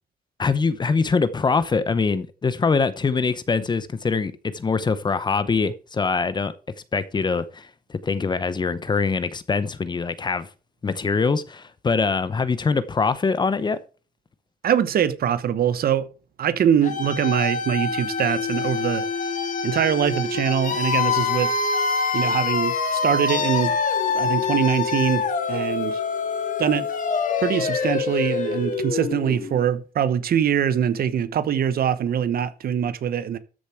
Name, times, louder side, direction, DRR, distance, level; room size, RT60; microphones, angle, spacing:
voice 1, 0.4-6.5 6.9-10.5 10.8-13.8, left 4 dB, 25° left, 0.8 m, -23 dB
voice 2, 14.6-16.1 16.4-19.0 19.6-21.5 22.1-23.7 24.1-26.0 26.6-26.9 27.4-33.4, right 9 dB, 70° right, 1.2 m, -23 dB
sound 1, 16.8-29.6, left 5 dB, 55° left, 1.9 m, -25 dB
13.5 x 7.0 x 4.6 m
wide cardioid pair, 170°, 16 cm